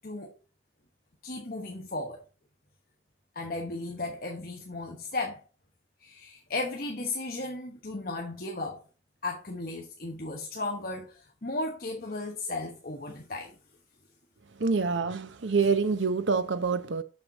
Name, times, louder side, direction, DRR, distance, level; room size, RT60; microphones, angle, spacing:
voice 1, 0.0-0.3 1.2-2.2 3.3-5.4 6.0-8.8 9.2-13.5 15.6-15.8, left 2 dB, 50° left, 1.2 m, -35 dB
voice 2, 14.6-17.0, right 4 dB, 90° right, 0.8 m, -26 dB
6.7 x 6.4 x 3.8 m
head